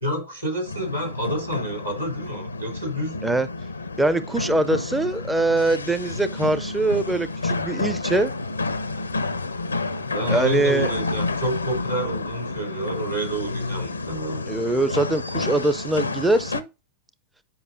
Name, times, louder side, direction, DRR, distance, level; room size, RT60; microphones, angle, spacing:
voice 1, 0.0-3.1 10.0-14.4, right 1 dB, 85° right, 3.2 m, -29 dB
sound 1, 0.6-16.6, left 3 dB, 80° left, 0.5 m, -30 dB
voice 2, 4.0-8.3 10.3-10.9 14.5-16.7, right 2 dB, 10° right, 0.5 m, -23 dB
9.5 x 5.3 x 2.6 m
figure-of-eight pair, 90°, 0 cm